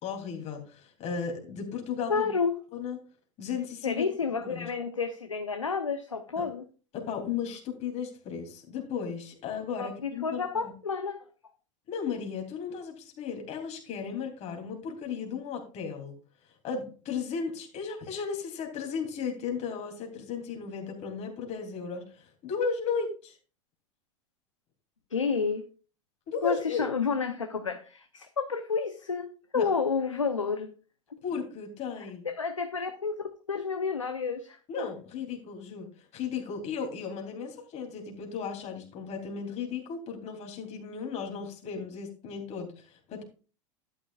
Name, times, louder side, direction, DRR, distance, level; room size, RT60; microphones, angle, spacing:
voice 1, 0.0-2.3 2.7-3.0 3.4-4.0 4.3-4.7 6.4-6.5 6.9-10.7 11.9-16.1 16.4-23.4 26.3-26.9 29.5-29.7 31.2-32.2 34.7-43.2, left 6 dB, 45° left, 3.3 m, -35 dB
voice 2, 2.1-2.6 3.8-6.6 9.8-11.2 25.1-25.6 26.4-30.7 32.2-34.9, left 5 dB, 90° left, 0.9 m, -30 dB
12.0 x 9.9 x 2.5 m
figure-of-eight pair, 85°, 16 cm